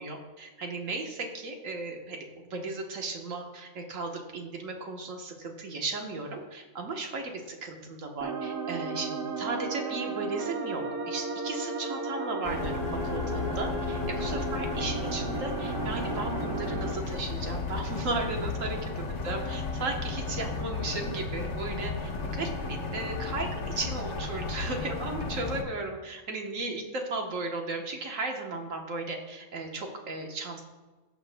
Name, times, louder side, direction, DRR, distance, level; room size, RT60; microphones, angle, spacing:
voice 1, 0.0-2.2 2.5-7.2 7.6-12.8 13.0-18.8 19.2-21.9 22.3-30.6, right 3 dB, 70° right, 2 dB, 1.5 m, -35 dB
sound 1, 8.2-16.9, right 3 dB, 50° right, 1.0 m, -34 dB
sound 2, 12.4-25.6, left 3 dB, 60° left, 1.2 m, -34 dB
17.0 x 5.9 x 2.2 m, 1.2 s
omnidirectional pair, 1.4 m